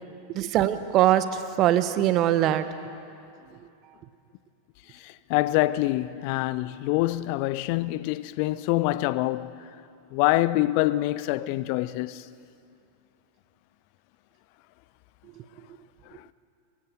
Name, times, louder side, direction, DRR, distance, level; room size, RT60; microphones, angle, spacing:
voice 1, 0.3-2.7 15.4-15.5, right 12 dB, 35° right, 1.3 m, -22 dB
voice 2, 4.9-9.7 10.1-12.3 16.1-16.3, left 17 dB, 45° left, 0.7 m, -26 dB
23.5 x 23.0 x 7.6 m
figure-of-eight pair, 90°, 0 cm